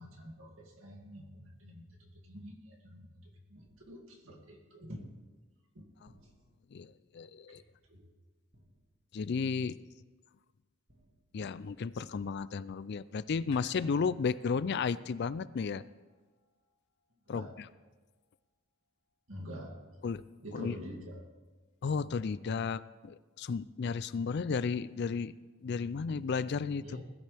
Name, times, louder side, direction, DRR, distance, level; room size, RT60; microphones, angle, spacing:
voice 1, 0.0-3.1 3.5-5.1 5.7-5.9 7.9-8.1 17.3-17.6 19.3-19.9 20.4-21.3 26.8-27.0, equal, 65° right, 1 dB, 2.4 m, -47 dB
sound 1, 3.5-4.4 6.0-6.9 8.5-9.2 10.9-11.5, right 1 dB, 50° right, 1.9 m, -65 dB
voice 2, 6.7-7.6 9.1-9.8 11.3-15.8 17.3-17.7 20.0-20.2 20.5-20.8 21.8-25.3 25.6-27.0, left 5 dB, 50° left, 16 dB, 0.4 m, -33 dB
sound 2, 13.5-17.8 18.2-18.3, left 5 dB, 75° left, 2.2 m, -62 dB
20.0 x 12.5 x 3.4 m, 1.3 s
head